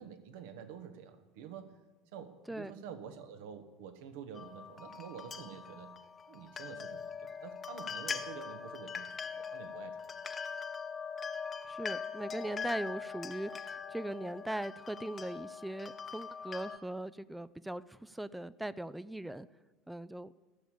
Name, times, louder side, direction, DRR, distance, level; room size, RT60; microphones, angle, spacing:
voice 1, 0.0-1.8 2.1-5.9 6.3-10.0, right 7 dB, 65° right, 8 dB, 1.3 m, -48 dB
sound 1, 4.3-16.8, left 6 dB, 30° left, 0.9 m, -42 dB
voice 2, 11.6-19.5 19.9-20.3, right 1 dB, 5° right, 16 dB, 0.5 m, -40 dB
14.0 x 7.2 x 8.7 m, 1.2 s
figure-of-eight pair, 70°, 0 cm